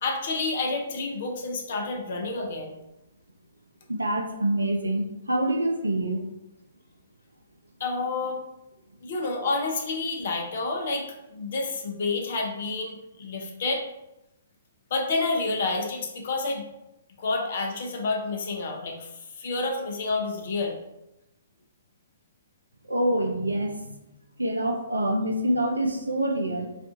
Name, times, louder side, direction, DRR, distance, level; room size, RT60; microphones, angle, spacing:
voice 1, 0.0-2.8 7.8-8.4 9.0-13.9 14.9-16.6 17.2-20.8, left 3 dB, 50° left, 1 dB, 0.5 m, -29 dB
voice 2, 3.9-6.3 22.9-24.0 24.4-26.8, right 1 dB, 75° right, 4 dB, 0.4 m, -26 dB
2.5 x 2.4 x 3.6 m, 0.91 s
figure-of-eight pair, 120°, 0 cm